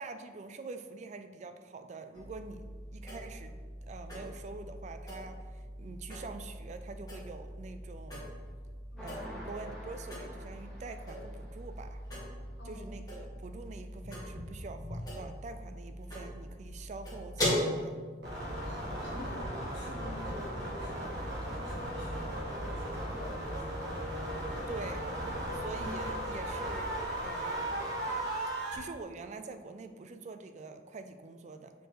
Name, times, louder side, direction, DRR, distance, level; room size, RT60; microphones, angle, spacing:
voice 1, 0.0-3.6 3.8-8.3 9.0-12.0 12.6-18.0 24.7-25.1 25.5-27.8 28.7-31.7, right 3 dB, 40° right, 8 dB, 0.3 m, -45 dB
sound 1, 2.1-17.6, left 1 dB, 20° left, 1.7 m, -40 dB
sound 2, 9.0-11.7, equal, ahead, 1.5 m, -47 dB
voice 2, 12.6-12.9 18.6-21.0 21.4-23.8 24.2-24.4 25.2-25.3 25.7-25.9, left 1 dB, 70° left, -3 dB, 1.5 m, -47 dB
sound 3, 18.2-28.8, right 1 dB, 70° right, 1.3 m, -36 dB
6.7 x 4.5 x 3.1 m, 1.5 s
head